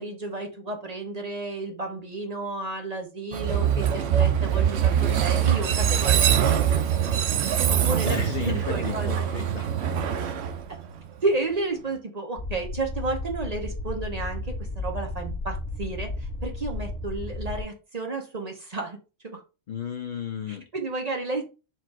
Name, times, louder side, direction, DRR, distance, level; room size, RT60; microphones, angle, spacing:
voice 1, 0.0-6.2 6.5-6.6 7.7-9.3 11.2-19.0 19.2-19.4 20.5-21.4, right 3 dB, 40° right, 3 dB, 0.8 m, -32 dB
Train, 3.3-11.3, right 9 dB, 70° right, 0.9 m, -23 dB
voice 2, 8.0-9.7 19.7-20.6, left 7 dB, 55° left, 6 dB, 0.7 m, -33 dB
sound 1, 12.4-17.6, left 2 dB, 70° left, 1.4 m, -33 dB
4.5 x 2.5 x 4.4 m, 0.31 s
omnidirectional pair, 1.2 m